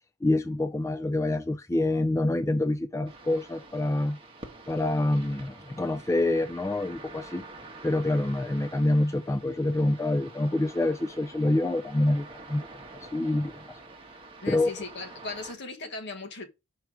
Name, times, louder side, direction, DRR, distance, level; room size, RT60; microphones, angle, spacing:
voice 1, 0.2-4.2 4.7-7.4 7.8-12.7 12.9-13.8 14.5-14.7, left 1 dB, 15° left, 0.3 m, -26 dB
sound 1, 3.1-15.5, right 2 dB, 25° right, 1.3 m, -47 dB
voice 2, 14.4-16.5, left 3 dB, 55° left, 1.3 m, -38 dB
6.0 x 4.6 x 4.8 m
head